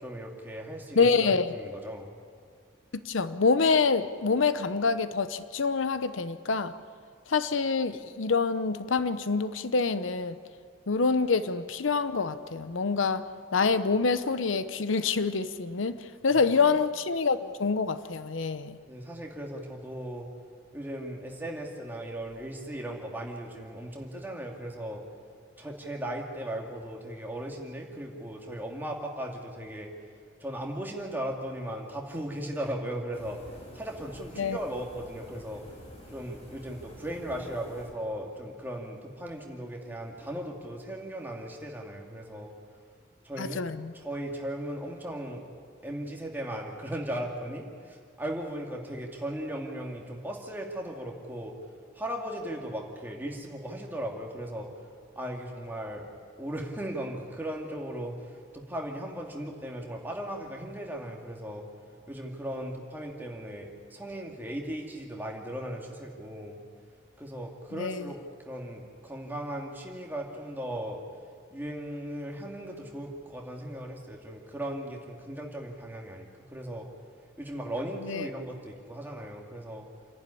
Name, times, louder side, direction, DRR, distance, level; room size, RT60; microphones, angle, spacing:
voice 1, 0.0-2.1 16.6-16.8 18.9-20.3 20.7-25.0 25.6-29.9 30.4-35.6 36.1-42.5 43.2-43.7 43.9-45.5 45.8-51.5 51.9-54.7 55.2-56.1 56.4-61.6 62.1-66.6 67.2-68.2 68.5-71.0 71.5-76.9 77.4-79.9, right 1 dB, 10° right, 0 dB, 2.3 m, -37 dB
voice 2, 1.0-1.5 2.9-6.7 7.3-10.4 10.9-18.8 34.4-34.6 43.4-43.9 67.7-68.1 78.0-78.3, left 4 dB, 85° left, 13 dB, 0.8 m, -26 dB
sound 1, 33.1-38.1, equal, 30° left, 3.1 m, -49 dB
28.0 x 11.0 x 9.9 m, 2.1 s
head